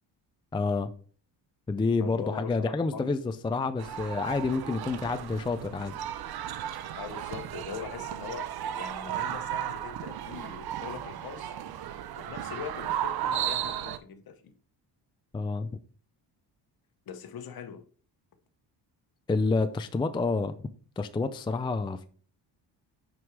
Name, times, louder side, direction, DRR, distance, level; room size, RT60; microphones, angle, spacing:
voice 1, 0.5-0.9 1.7-6.0 15.3-15.7 19.3-20.5 21.0-22.1, left 3 dB, 10° left, 0.4 m, -28 dB
voice 2, 2.0-3.1 6.9-8.5 8.8-11.5 12.2-14.5 17.1-17.8, left 7 dB, 55° left, 1.1 m, -41 dB
sound 1, 3.8-14.0, right 10 dB, 55° right, 0.7 m, -35 dB
6.3 x 5.3 x 4.7 m
cardioid pair, 115°, 44 cm